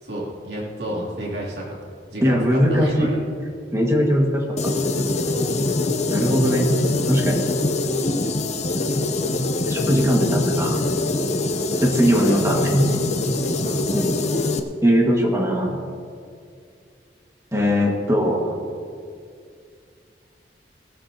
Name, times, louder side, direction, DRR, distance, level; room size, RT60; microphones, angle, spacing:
voice 1, 0.0-1.8 2.1-3.2 11.7-12.0 12.2-12.4 12.9-13.0 13.6-13.8, right 1 dB, 70° right, -5 dB, 3.0 m, -31 dB
voice 2, 2.2-3.1 3.7-4.7 6.1-6.7 7.1-7.4 9.7-10.8 11.8-12.8 13.9-14.1 14.8-15.8 17.5-18.5, equal, 15° right, 0 dB, 1.7 m, -20 dB
sound 1, 4.6-14.6, left 2 dB, 40° left, 0.8 m, -23 dB
17.5 x 13.5 x 2.9 m, 2.3 s
head